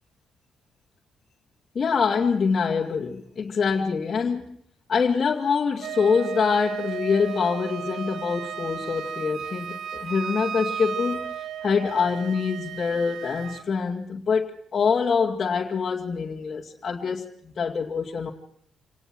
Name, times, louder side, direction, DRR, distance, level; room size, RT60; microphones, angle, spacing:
voice 1, 1.7-4.6 4.9-11.3 11.6-18.3, left 5 dB, 40° left, -2 dB, 2.3 m, -25 dB
Wind instrument woodwind instrument, 5.8-13.7, right 9 dB, 70° right, 1.2 m, -34 dB
27.0 x 19.0 x 6.2 m, 0.67 s
cardioid pair, 90°, 0 cm